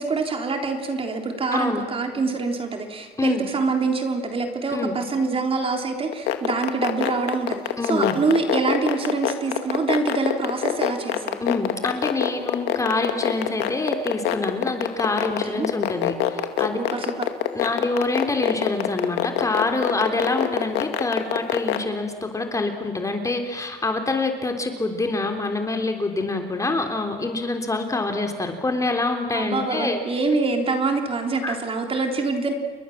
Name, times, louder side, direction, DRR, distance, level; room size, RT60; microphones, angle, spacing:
voice 1, 0.0-11.4 15.4-15.7 16.8-17.2 29.3-32.5, right 3 dB, 35° right, 4 dB, 3.9 m, -25 dB
voice 2, 1.5-1.8 3.2-3.5 4.7-4.9 7.8-8.2 11.4-16.8 17.5-30.0 31.4-31.6, left 3 dB, 20° left, 5 dB, 3.4 m, -26 dB
sound 1, 6.1-21.8, left 13 dB, 80° left, 2.2 m, -22 dB
30.0 x 22.5 x 7.4 m, 1.6 s
cardioid pair, 110°, 17 cm